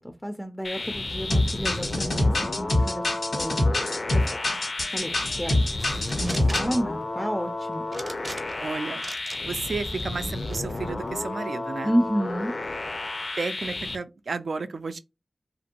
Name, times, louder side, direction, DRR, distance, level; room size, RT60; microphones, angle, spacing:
voice 1, 0.0-3.6 4.1-4.4 4.9-5.1 5.4-5.5 6.2-7.9 8.5-8.7 11.8-12.5, equal, 5° left, 0.4 m, -30 dB
sound 1, 0.6-14.0, left 2 dB, 65° left, 0.5 m, -32 dB
sound 2, 1.3-6.8, left 1 dB, 90° left, 1.3 m, -25 dB
sound 3, 5.8-6.8 7.9-8.7 9.0-9.4 9.9-10.6, right 2 dB, 40° right, 0.6 m, -39 dB
voice 2, 8.6-9.0 9.4-11.9 13.4-15.0, right 4 dB, 90° right, 0.3 m, -32 dB
2.9 x 2.5 x 2.8 m
wide cardioid pair, 90°, 0 cm